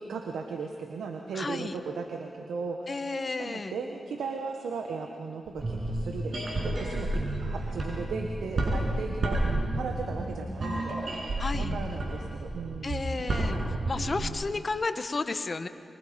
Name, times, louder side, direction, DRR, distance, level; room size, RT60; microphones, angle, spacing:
voice 1, 0.0-3.0 3.4-11.0 11.6-13.1 14.2-14.5, right 5 dB, 90° right, 3 dB, 1.4 m, -37 dB
voice 2, 1.3-1.7 2.9-3.8 11.4-11.8 12.8-13.6 13.9-15.7, left 3 dB, 45° left, 9 dB, 1.4 m, -32 dB
sound 1, 5.5-14.3, right 1 dB, 60° right, 6.7 m, -31 dB
24.5 x 24.0 x 5.3 m, 2.2 s
cardioid pair, 50°, 0 cm